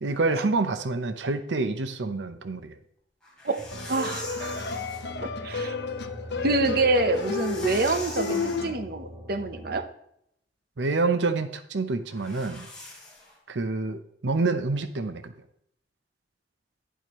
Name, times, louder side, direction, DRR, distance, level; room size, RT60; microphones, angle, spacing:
voice 1, 0.0-2.8 10.8-12.7 13.5-15.3, right 3 dB, 90° right, 9 dB, 0.7 m, -27 dB
sound 1, 3.2-5.1 6.9-8.7 12.1-13.4, left 2 dB, 5° left, 3.5 m, -42 dB
voice 2, 3.4-4.7 5.2-5.7 6.4-9.9, right 3 dB, 60° right, 9 dB, 0.8 m, -27 dB
sound 2, 3.6-9.8, equal, 15° right, 3.9 m, -42 dB
sound 3, 3.7-8.8, left 4 dB, 65° left, 0.8 m, -32 dB
11.0 x 10.0 x 3.1 m, 0.72 s
head